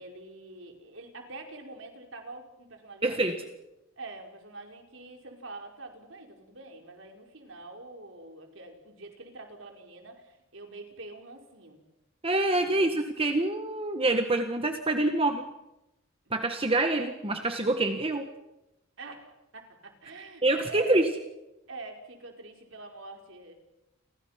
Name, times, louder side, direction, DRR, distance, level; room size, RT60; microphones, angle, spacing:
voice 1, 0.0-3.4 4.0-11.8 12.5-12.9 19.0-21.0 21.7-23.5, right 2 dB, 65° right, 3 dB, 5.0 m, -45 dB
voice 2, 3.0-3.4 12.2-15.5 16.3-18.3 20.4-21.1, right 2 dB, 25° right, 6 dB, 1.6 m, -26 dB
30.0 x 24.5 x 5.9 m, 0.93 s
head